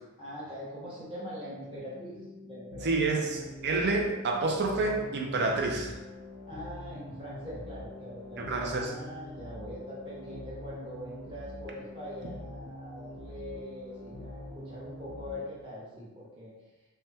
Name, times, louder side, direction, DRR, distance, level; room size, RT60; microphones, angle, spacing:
voice 1, 0.2-2.9 3.2-3.3 6.5-16.5, equal, 25° right, -9 dB, 1.2 m, -42 dB
sound 1, 1.8-15.3, left 1 dB, 45° left, 0.5 m, -45 dB
voice 2, 2.8-5.9 8.4-8.9, right 3 dB, 50° right, 2 dB, 0.4 m, -28 dB
3.4 x 2.2 x 2.8 m, 1.1 s
head